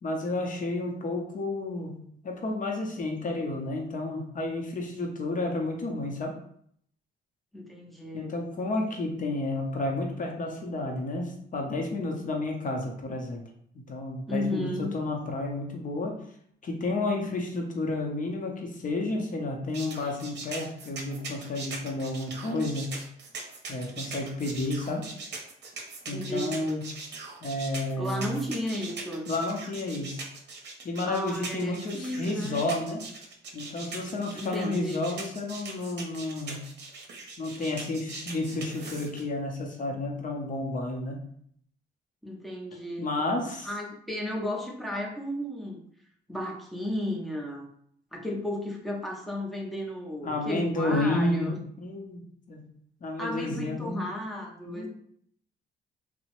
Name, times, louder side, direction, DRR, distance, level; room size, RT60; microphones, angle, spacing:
voice 1, 0.0-6.4 8.1-13.4 13.7-16.2 16.6-22.9 23.7-25.1 26.1-26.9 27.4-28.4 29.3-30.2 30.8-33.0 33.5-36.6 37.4-41.3 43.0-43.7 50.2-52.2 52.5-52.7 53.0-54.0 54.7-54.9, left 2 dB, 40° left, 1 dB, 0.7 m, -31 dB
voice 2, 7.5-8.3 14.3-14.9 26.1-26.8 28.0-29.3 31.1-32.7 34.3-35.0 42.2-43.1 43.6-45.8 46.3-47.7 48.1-51.6 53.2-54.9, left 1 dB, ahead, 0 dB, 0.6 m, -34 dB
sound 1, 19.7-39.2, right 4 dB, 60° right, 0.7 m, -41 dB
2.9 x 2.0 x 2.9 m, 0.66 s
cardioid pair, 90°, 20 cm